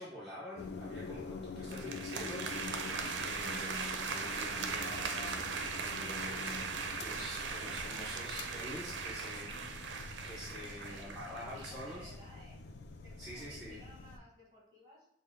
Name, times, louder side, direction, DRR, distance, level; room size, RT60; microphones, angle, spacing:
voice 1, 0.0-2.7 3.2-5.4 5.8-6.7 7.0-9.6 10.2-12.1 13.2-13.8, equal, 5° right, -10 dB, 0.8 m, -46 dB
sound 1, 0.5-14.2, left 3 dB, 70° left, 0.4 m, -46 dB
sound 2, 1.6-12.0, right 5 dB, 85° right, 0.5 m, -39 dB
voice 2, 3.0-3.3 10.6-12.6 13.0-15.1, left 1 dB, 20° right, -4 dB, 1.4 m, -57 dB
6.2 x 2.2 x 3.6 m, 0.73 s
head